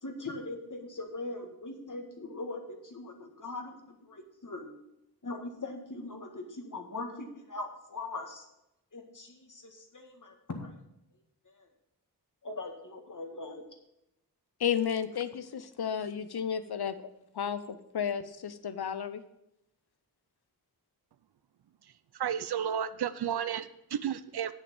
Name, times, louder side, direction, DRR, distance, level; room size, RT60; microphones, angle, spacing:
voice 1, 0.0-4.7 5.2-8.5 8.9-10.8 11.5-11.7 12.4-13.6, left 2 dB, 50° left, 3 dB, 1.9 m, -41 dB
voice 2, 14.6-17.0 17.3-17.6 17.9-19.2, left 8 dB, 75° left, 12 dB, 0.8 m, -32 dB
voice 3, 22.1-24.5, right 9 dB, 80° right, 13 dB, 0.5 m, -32 dB
8.7 x 6.8 x 7.0 m, 0.84 s
wide cardioid pair, 90°, 38 cm